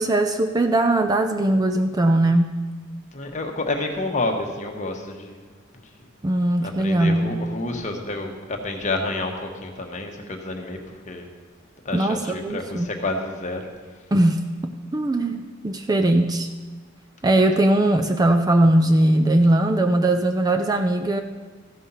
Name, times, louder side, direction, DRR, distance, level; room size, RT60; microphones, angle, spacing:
voice 1, 0.0-2.5 6.2-7.3 11.9-12.9 14.1-16.5 17.2-21.2, right 1 dB, 20° right, 6 dB, 0.4 m, -20 dB
voice 2, 3.1-5.4 5.7-5.8 6.6-11.3 11.8-13.6, left 2 dB, 35° left, 3 dB, 1.2 m, -29 dB
14.5 x 5.5 x 5.6 m, 1.4 s
head